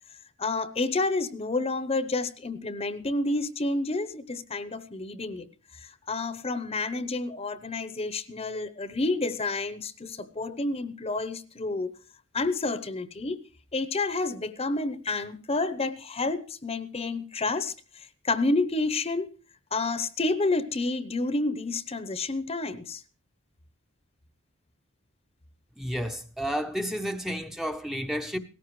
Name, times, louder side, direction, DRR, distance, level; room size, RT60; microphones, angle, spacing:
voice 1, 0.4-5.5 5.7-11.9 12.3-13.4 13.7-19.3 19.7-23.0, left 3 dB, 30° left, 0.8 m, -29 dB
voice 2, 25.8-28.4, equal, ahead, 0.7 m, -31 dB
18.0 x 14.5 x 3.1 m
head